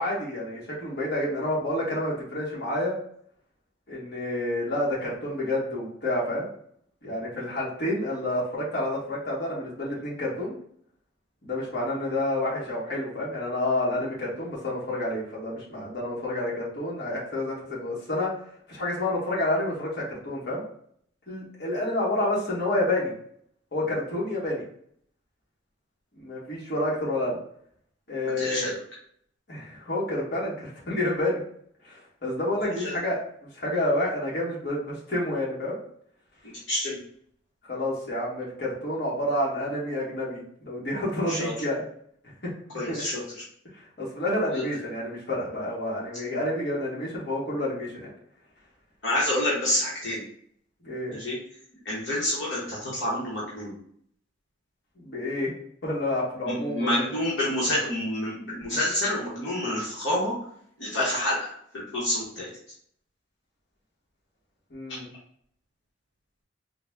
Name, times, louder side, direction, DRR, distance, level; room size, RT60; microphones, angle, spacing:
voice 1, 0.0-2.9 3.9-6.5 7.0-10.5 11.4-18.3 18.7-20.6 21.3-23.1 23.7-24.6 26.2-27.4 28.1-28.8 29.5-31.4 31.8-35.8 37.7-41.8 42.9-43.0 43.7-48.1 50.8-51.2 55.0-55.5 55.8-57.1 64.7-65.1, left 1 dB, 60° left, -5 dB, 1.4 m, -29 dB
voice 2, 28.4-28.8 32.8-32.9 36.7-37.0 41.3-41.5 42.7-43.2 44.5-44.6 49.0-50.2 51.1-51.4 51.8-53.7 56.5-60.3 60.8-62.5, left 1 dB, 75° left, -7 dB, 1.1 m, -28 dB
3.8 x 2.1 x 3.5 m, 0.65 s
head